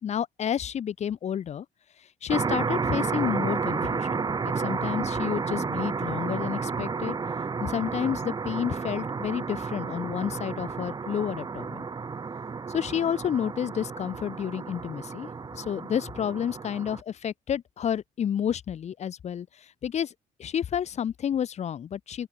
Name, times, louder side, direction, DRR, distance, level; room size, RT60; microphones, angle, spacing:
voice 1, 0.0-1.6 2.2-7.2 7.6-11.9 12.7-15.3 15.5-19.5 19.8-20.1 20.4-22.3, left 9 dB, 45° left, 3.4 m, -30 dB
sound 1, 2.3-17.0, right 5 dB, 25° right, 6.5 m, -31 dB
open air
cardioid pair, 125°, 15 cm